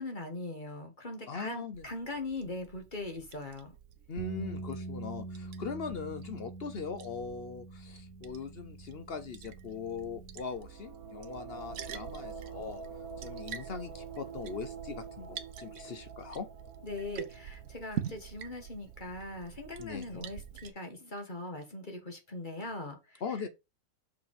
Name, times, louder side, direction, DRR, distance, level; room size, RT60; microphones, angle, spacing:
voice 1, 0.0-3.7 16.8-23.2, left 2 dB, 25° left, 1.8 m, -40 dB
voice 2, 1.3-1.8 4.1-12.8 13.2-16.5 19.8-20.3 23.2-23.5, left 5 dB, 55° left, 0.6 m, -40 dB
Liquid, 1.7-20.7, right 9 dB, 60° right, 1.1 m, -46 dB
sound 1, 4.2-10.4, right 2 dB, 75° right, 2.2 m, -44 dB
sound 2, 10.4-19.0, right 4 dB, 35° right, 1.8 m, -47 dB
6.2 x 5.2 x 4.9 m
omnidirectional pair, 1.9 m